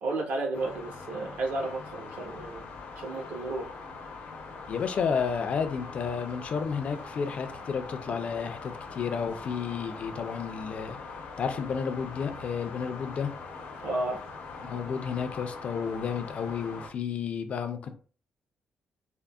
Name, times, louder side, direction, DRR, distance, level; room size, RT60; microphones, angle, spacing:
voice 1, 0.0-2.6 3.0-3.8 13.8-14.2, right 2 dB, 75° right, 0.9 m, -32 dB
sound 1, 0.5-16.9, left 4 dB, 75° left, 0.7 m, -42 dB
voice 2, 4.7-11.0 11.4-13.3 14.6-17.9, left 6 dB, 45° left, 0.4 m, -31 dB
3.6 x 2.0 x 2.3 m
cardioid pair, 145°, 3 cm